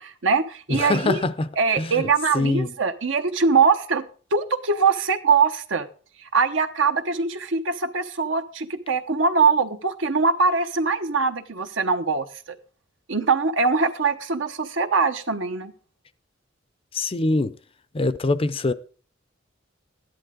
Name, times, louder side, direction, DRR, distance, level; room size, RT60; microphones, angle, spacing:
voice 1, 0.0-1.2 1.6-4.0 4.3-5.9 6.3-12.6 13.1-15.7, right 4 dB, 75° right, 1.1 m, -22 dB
voice 2, 0.7-1.5 1.8-2.1 2.3-2.7 16.9-17.5 17.9-18.7, left 2 dB, 30° left, 0.5 m, -23 dB
13.0 x 10.5 x 3.7 m
head